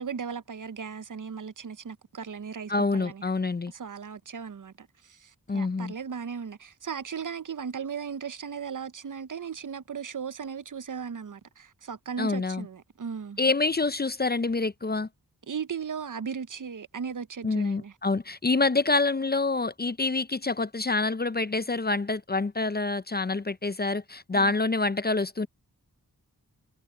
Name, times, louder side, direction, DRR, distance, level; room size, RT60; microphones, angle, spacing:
voice 1, 0.0-3.2 3.7-13.4 15.5-17.9 24.3-24.5, right 6 dB, 55° right, 0.7 m, -37 dB
voice 2, 2.7-3.7 5.5-5.9 12.2-12.7 13.4-15.1 17.4-25.5, left 3 dB, 25° left, 0.5 m, -27 dB
cardioid pair, 50°, 37 cm